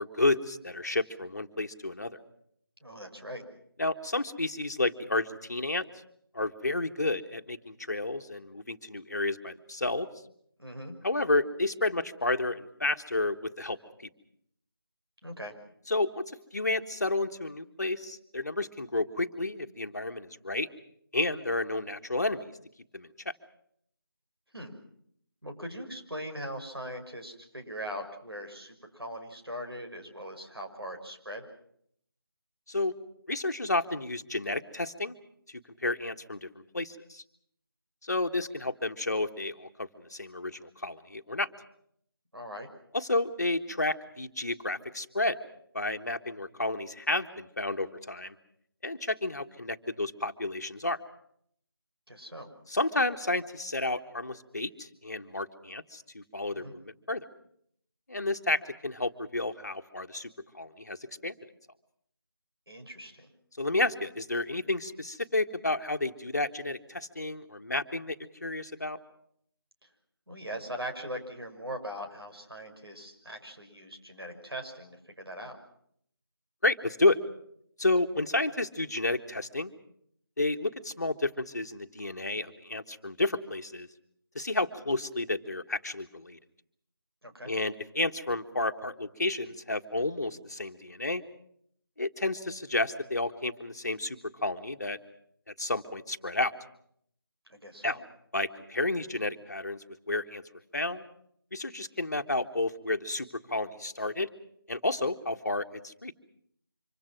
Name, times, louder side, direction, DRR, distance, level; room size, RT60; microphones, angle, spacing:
voice 1, 0.0-2.2 3.8-5.9 6.3-10.1 11.0-13.8 15.9-16.2 16.5-20.7 21.1-22.5 22.9-23.1 32.7-32.9 33.3-35.2 35.8-37.2 38.0-41.5 42.9-45.4 45.7-48.3 48.8-51.0 52.7-57.2 58.1-61.4 63.6-68.1 68.4-69.0 76.6-77.2 77.8-79.7 80.4-83.9 84.3-86.4 87.5-91.2 92.0-95.0 95.5-96.5 97.8-98.0 98.3-100.4 100.7-101.0 101.5-104.3 104.7-106.1, left 2 dB, 45° left, 6 dB, 1.6 m, -31 dB
voice 2, 2.8-3.4 10.6-10.9 15.2-15.5 24.5-24.7 25.4-31.4 42.3-42.7 52.1-52.5 56.5-56.7 62.7-63.3 70.3-75.6 87.2-87.5 97.5-98.0, equal, 80° right, 4 dB, 6.1 m, -40 dB
25.5 x 24.5 x 6.1 m, 0.68 s
figure-of-eight pair, 165°, 13 cm